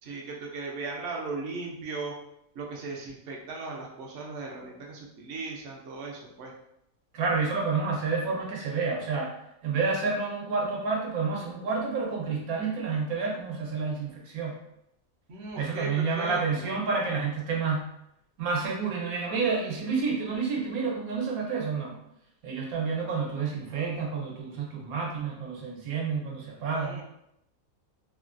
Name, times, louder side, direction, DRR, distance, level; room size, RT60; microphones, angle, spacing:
voice 1, 0.0-2.1 2.5-6.5 15.3-16.7 26.7-27.0, right 3 dB, 60° right, -2 dB, 0.8 m, -37 dB
voice 2, 7.1-9.3 9.6-14.6 15.6-17.8 18.4-21.9 22.4-27.0, right 4 dB, 85° right, -2 dB, 1.2 m, -29 dB
3.1 x 2.2 x 2.4 m, 0.80 s
omnidirectional pair, 1.5 m